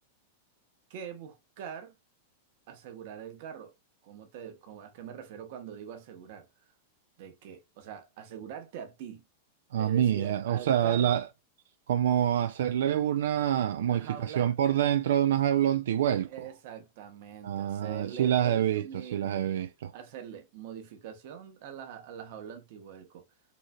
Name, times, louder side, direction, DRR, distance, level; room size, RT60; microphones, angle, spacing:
voice 1, 0.9-1.9 2.7-3.7 4.0-6.5 7.2-9.3 9.8-11.2 13.9-14.5 16.3-19.4 19.9-23.2, right 8 dB, 45° right, 1.0 m, -43 dB
voice 2, 9.7-11.3 11.9-16.3 17.4-19.9, right 10 dB, 80° right, 0.3 m, -26 dB
4.0 x 3.2 x 2.3 m
supercardioid pair, 175°, 0 cm